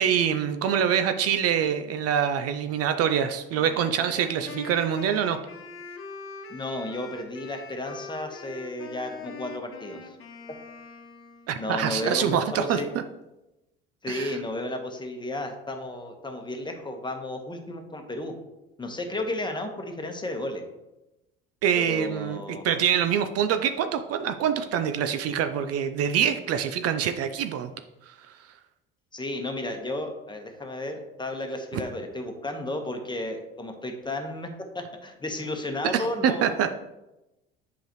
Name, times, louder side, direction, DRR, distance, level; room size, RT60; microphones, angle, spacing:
voice 1, 0.0-5.4 11.5-12.8 14.1-14.4 21.6-27.7 28.1-28.2 35.9-36.7, right 8 dB, 50° right, 9 dB, 0.5 m, -25 dB
Wind instrument woodwind instrument, 3.5-11.7, left 5 dB, 45° left, 1.1 m, -43 dB
voice 2, 6.5-10.2 11.6-12.9 14.0-18.3 18.8-20.6 21.7-22.6 29.1-34.5 34.7-36.6, left 1 dB, 15° left, 4 dB, 1.1 m, -33 dB
7.8 x 5.0 x 3.0 m, 0.97 s
hypercardioid pair, 75°, 30 cm